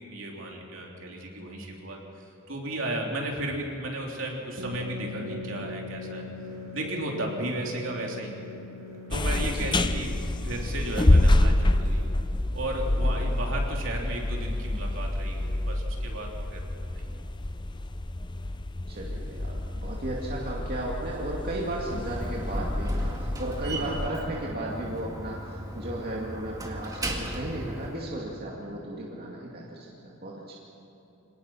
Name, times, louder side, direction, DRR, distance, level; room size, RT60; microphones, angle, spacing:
voice 1, 0.0-6.2 6.7-8.3 9.1-10.2 10.4-12.1 12.5-16.6 16.9-17.0 21.9-22.1 23.7-24.0, right 1 dB, 65° right, -1 dB, 3.4 m, -34 dB
sound 1, 4.6-12.0, left 3 dB, 85° right, 2.6 m, -41 dB
sound 2, 9.1-24.1, left 1 dB, 20° left, 0.6 m, -27 dB
voice 2, 9.5-9.9 18.9-30.5, right 1 dB, 45° right, -4 dB, 2.4 m, -35 dB
Slam, 21.8-28.0, right 1 dB, 15° right, 1.9 m, -36 dB
26.0 x 18.5 x 5.8 m, 3.0 s
head